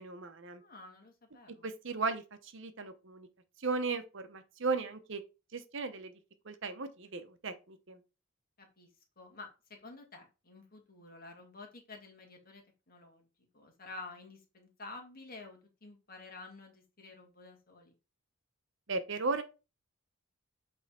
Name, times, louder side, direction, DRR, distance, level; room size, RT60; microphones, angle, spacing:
voice 1, 0.0-0.6 1.6-3.3 3.6-5.2 5.5-6.1 6.4-8.0 18.9-19.4, right 4 dB, 60° right, 0.9 m, -36 dB
voice 2, 0.6-1.7 8.6-8.9 9.2-13.2 13.5-17.9, left 3 dB, 45° left, 2.0 m, -50 dB
8.5 x 3.5 x 4.3 m
head